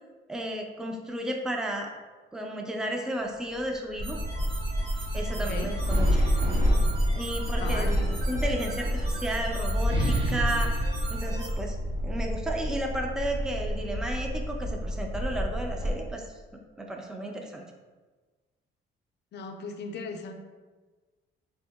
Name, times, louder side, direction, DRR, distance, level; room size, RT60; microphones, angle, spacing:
voice 1, 0.3-1.9 2.3-4.2 5.1-6.2 7.1-7.9 8.3-11.8 12.0-16.2 16.8-17.6, right 1 dB, 5° right, 2 dB, 0.4 m, -33 dB
sound 1, 3.5-3.7 4.1-7.7 8.6-12.3, equal, 25° right, 0.7 m, -30 dB
sound 2, 4.0-11.5, right 3 dB, 50° right, 1.3 m, -41 dB
sound 3, 4.0-15.9, equal, 90° right, 1.4 m, -30 dB
voice 2, 5.3-5.7 7.6-8.1 19.3-20.3, left 4 dB, 60° left, 5 dB, 0.4 m, -37 dB
3.5 x 2.7 x 2.3 m, 1.3 s
cardioid pair, 90°, 20 cm